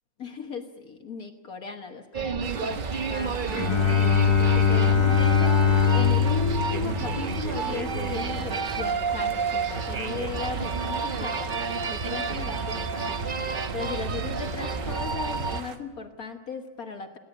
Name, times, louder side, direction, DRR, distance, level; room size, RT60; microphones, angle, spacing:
voice 1, 0.2-17.2, left 5 dB, 55° left, 4 dB, 1.7 m, -37 dB
sound 1, 2.1-15.6, right 5 dB, 45° right, 0.7 m, -30 dB
sound 2, 2.4-15.8, right 6 dB, 65° right, 1.9 m, -42 dB
Bowed string instrument, 3.5-8.0, left 7 dB, 20° left, 1.0 m, -22 dB
28.5 x 11.5 x 9.9 m, 1.3 s
omnidirectional pair, 2.0 m